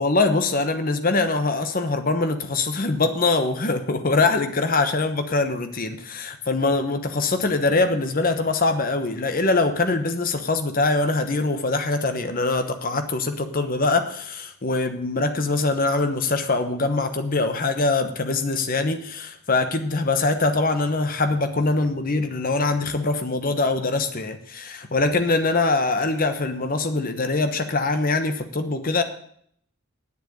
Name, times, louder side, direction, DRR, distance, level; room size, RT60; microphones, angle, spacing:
voice 1, 0.0-29.0, left 3 dB, 40° left, 8 dB, 1.0 m, -23 dB
9.6 x 7.7 x 7.8 m, 0.66 s
head